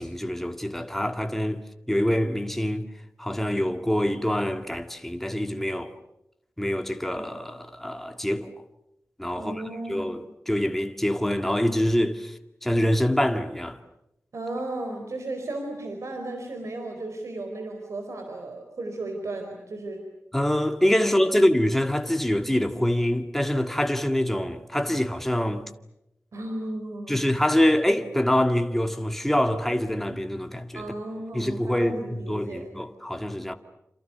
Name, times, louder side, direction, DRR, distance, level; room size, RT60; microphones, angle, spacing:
voice 1, 0.0-1.6 1.9-2.9 3.2-5.9 6.6-8.5 9.2-12.3 12.6-13.8 20.3-25.6 27.1-30.8 31.3-33.5, left 1 dB, 5° left, 1.9 m, -25 dB
voice 2, 9.3-10.2 14.3-20.0 21.0-21.4 26.3-27.3 30.7-32.7, right 2 dB, 75° right, 4.4 m, -35 dB
28.5 x 27.5 x 6.9 m
wide cardioid pair, 110°, 5 cm